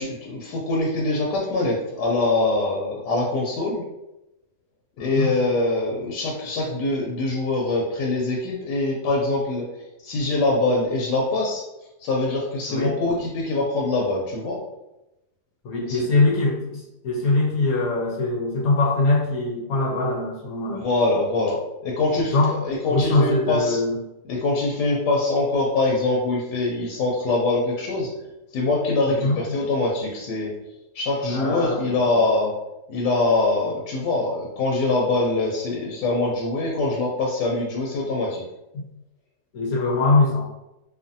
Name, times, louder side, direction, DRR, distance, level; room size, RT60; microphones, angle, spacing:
voice 1, 0.0-3.8 5.0-9.6 10.0-11.6 12.0-14.6 15.9-16.0 20.7-23.8 24.3-28.1 28.5-30.5 30.9-32.5 32.9-38.4, left 2 dB, 90° left, -2 dB, 1.2 m, -23 dB
voice 2, 5.0-5.3 12.7-13.0 15.6-20.8 22.3-22.6 22.9-24.0 29.1-29.4 31.3-32.2 38.7-38.9 39.5-40.5, left 2 dB, 70° left, -2 dB, 1.0 m, -22 dB
2.7 x 2.5 x 2.6 m, 0.93 s
omnidirectional pair, 1.8 m